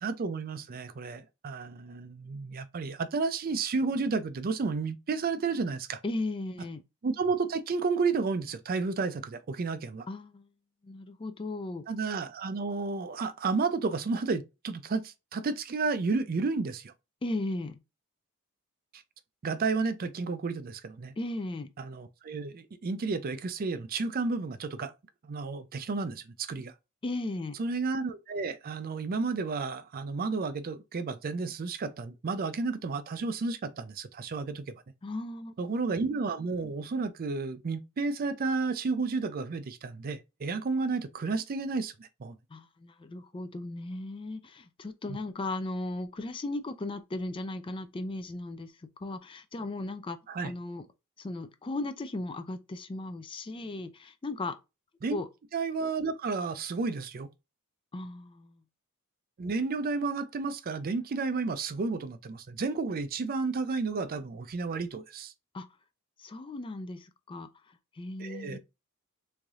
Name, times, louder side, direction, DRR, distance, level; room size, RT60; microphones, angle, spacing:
voice 1, 0.0-6.0 7.0-10.1 11.9-16.9 18.9-19.0 19.4-21.1 21.8-24.9 25.2-26.7 27.6-34.7 35.6-42.4 45.1-45.2 50.3-50.5 55.0-55.2 55.5-57.3 59.4-65.3 68.2-68.6, right 4 dB, 40° right, 0.4 m, -32 dB
voice 2, 6.0-6.8 10.1-10.5 10.8-11.8 17.2-17.8 21.2-21.7 27.0-27.6 35.0-35.5 42.5-50.2 50.4-50.9 51.2-54.6 55.1-55.3 57.9-58.6 65.5-65.7 66.2-68.6, left 2 dB, 25° left, 0.4 m, -36 dB
3.5 x 3.2 x 2.6 m
head